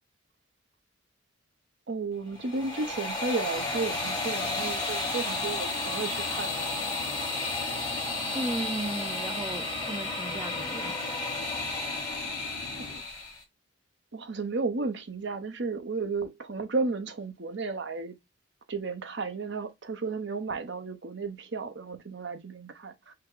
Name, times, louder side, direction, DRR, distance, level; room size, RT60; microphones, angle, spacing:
voice 1, 1.9-6.7 12.8-12.9 14.1-18.1 18.7-23.1, right 3 dB, 60° right, 0.8 m, -33 dB
sound 1, 2.3-13.4, left 2 dB, 20° left, 1.7 m, -32 dB
sound 2, 3.6-13.0, left 2 dB, 60° left, 0.7 m, -45 dB
voice 2, 8.3-11.3, right 1 dB, 15° right, 0.3 m, -36 dB
5.7 x 2.2 x 3.7 m
head